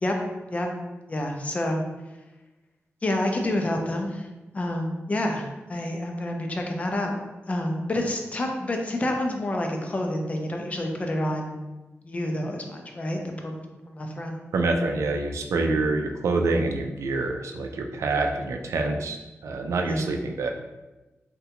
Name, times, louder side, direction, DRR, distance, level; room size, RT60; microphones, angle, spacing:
voice 1, 1.1-1.8 3.0-4.3 4.5-7.2 7.5-11.6 12.0-14.4 19.9-20.1, left 1 dB, 30° left, 2 dB, 0.4 m, -28 dB
voice 2, 14.5-19.2 19.4-20.5, right 3 dB, 90° right, 3 dB, 0.3 m, -26 dB
3.6 x 2.2 x 2.9 m, 1.1 s
wide cardioid pair, 140°, 5 cm